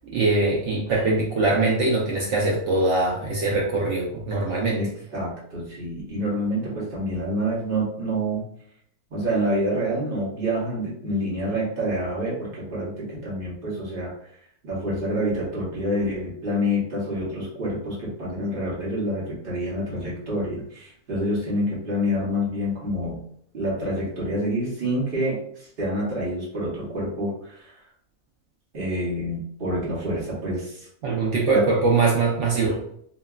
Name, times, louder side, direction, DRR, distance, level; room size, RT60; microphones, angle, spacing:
voice 1, 0.1-4.8 31.0-32.8, right 3 dB, 70° right, -3 dB, 0.7 m, -22 dB
voice 2, 4.7-8.5 9.1-14.1 14.6-23.2 23.5-27.8 28.7-30.9 31.5-31.7, equal, 40° right, -6 dB, 1.0 m, -27 dB
2.9 x 2.2 x 2.2 m, 0.67 s
omnidirectional pair, 1.6 m